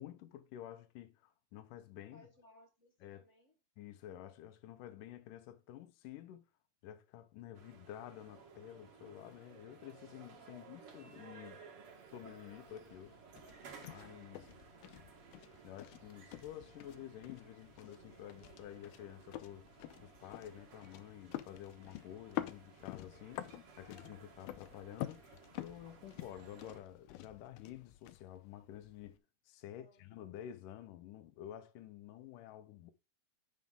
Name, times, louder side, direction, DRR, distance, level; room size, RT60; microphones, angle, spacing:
voice 1, 0.0-2.3 3.0-3.2 3.8-6.5 6.8-11.6 12.1-13.2 13.8-14.5 15.6-23.5 23.8-25.2 25.6-32.9, left 11 dB, 70° left, 2.4 m, -51 dB
voice 2, 2.1-3.5 10.4-10.7 29.6-30.0, left 1 dB, 50° left, 0.8 m, -63 dB
sound 1, 7.5-26.8, right 5 dB, 50° right, 2.1 m, -58 dB
sound 2, 12.2-29.2, left 15 dB, 90° left, 2.5 m, -49 dB
10.5 x 5.6 x 3.7 m
omnidirectional pair, 4.3 m